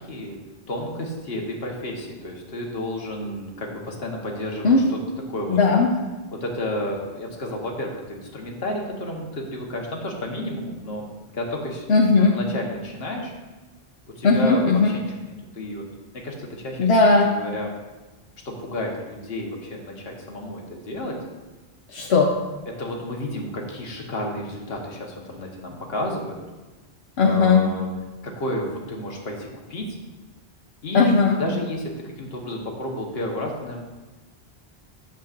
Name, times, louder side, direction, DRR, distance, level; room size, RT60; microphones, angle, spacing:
voice 1, 0.7-4.7 5.3-5.6 6.4-11.0 11.3-12.0 12.3-13.3 14.2-15.1 15.5-15.8 16.2-16.8 17.3-17.7 18.4-21.2 22.8-26.4 27.2-27.9 28.2-29.8 30.8-33.8, left 1 dB, 70° left, 0 dB, 1.5 m, -31 dB
voice 2, 5.5-5.9 11.9-12.4 14.2-14.9 16.8-17.3 21.9-22.3 27.2-27.7 30.9-31.4, left 4 dB, 85° left, -1 dB, 1.0 m, -17 dB
11.0 x 7.4 x 2.5 m, 1.2 s
omnidirectional pair, 1.0 m